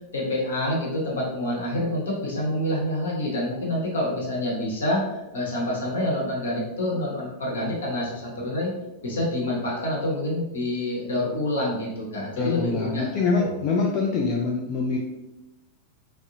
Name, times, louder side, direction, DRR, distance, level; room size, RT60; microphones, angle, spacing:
voice 1, 0.1-8.7 9.0-13.1 13.3-13.5, left 1 dB, 65° left, -4 dB, 0.9 m, -27 dB
voice 2, 12.4-15.0, left 4 dB, 40° left, -1 dB, 0.3 m, -25 dB
2.6 x 2.0 x 2.6 m, 0.95 s
figure-of-eight pair, 90°, 0 cm